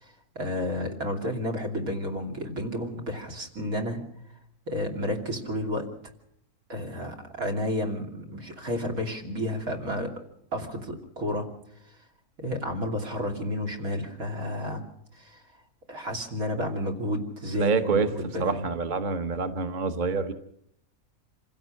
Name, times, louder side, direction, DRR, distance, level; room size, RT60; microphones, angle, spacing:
voice 1, 0.0-4.0 4.7-5.9 6.7-10.1 10.5-11.5 12.4-14.8 15.1-15.4 15.9-18.6, left 1 dB, 80° right, 6 dB, 3.4 m, -31 dB
voice 2, 17.6-18.1 18.4-20.3, right 4 dB, 35° right, 9 dB, 1.2 m, -26 dB
26.5 x 16.0 x 6.5 m, 0.73 s
omnidirectional pair, 1.5 m